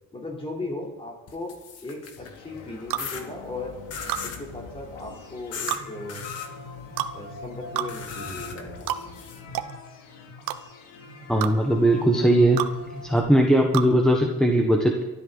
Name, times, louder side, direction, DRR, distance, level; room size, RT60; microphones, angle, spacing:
voice 1, 0.1-3.8 4.2-6.3 7.1-8.9, left 2 dB, 15° left, -1 dB, 3.7 m, -37 dB
sound 1, 1.3-2.4 3.0-3.2 3.9-4.4 5.5-5.8 6.1-6.5 7.9-9.4, left 6 dB, 50° left, 2.1 m, -37 dB
sound 2, 2.2-13.2, left 3 dB, 85° left, 2.9 m, -43 dB
sound 3, 2.9-3.1 4.1-4.3 5.7-5.8 7.0-7.1 7.7-7.9 8.9-9.0 9.5-9.7 10.5-10.6 11.4-11.5 12.6-12.7 13.7-13.9, right 12 dB, 85° right, 1.1 m, -28 dB
voice 2, 11.3-12.6 12.9-15.1, right 1 dB, ahead, 1 dB, 1.3 m, -19 dB
23.5 x 13.0 x 4.1 m, 1.1 s
cardioid pair, 150°, 32 cm